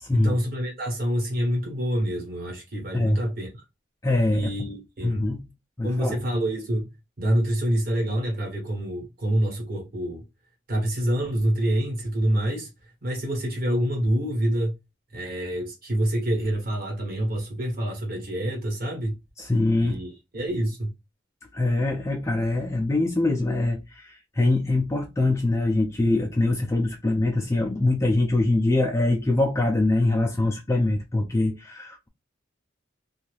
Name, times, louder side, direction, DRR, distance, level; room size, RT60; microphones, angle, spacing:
voice 1, 0.1-3.5 4.3-5.3 5.8-10.2 10.7-12.7 13.0-14.8 15.1-19.2 19.8-20.9, equal, 50° right, 1.2 m, -27 dB
voice 2, 4.0-4.4 5.0-5.5 5.8-6.2 19.4-20.0 21.5-32.1, left 2 dB, 15° left, 0.4 m, -23 dB
2.7 x 2.3 x 3.2 m
head